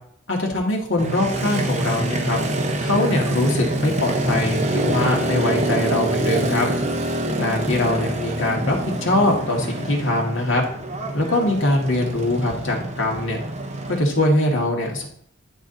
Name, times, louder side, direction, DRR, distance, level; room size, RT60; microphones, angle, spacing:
voice 1, 0.3-2.4 2.8-6.7 7.4-10.6 11.1-13.4 13.9-15.0, left 1 dB, 70° left, -1 dB, 2.1 m, -22 dB
Motorcycle, 1.0-14.0, right 1 dB, 35° right, 1.0 m, -26 dB
11.0 x 4.9 x 4.1 m, 0.65 s
head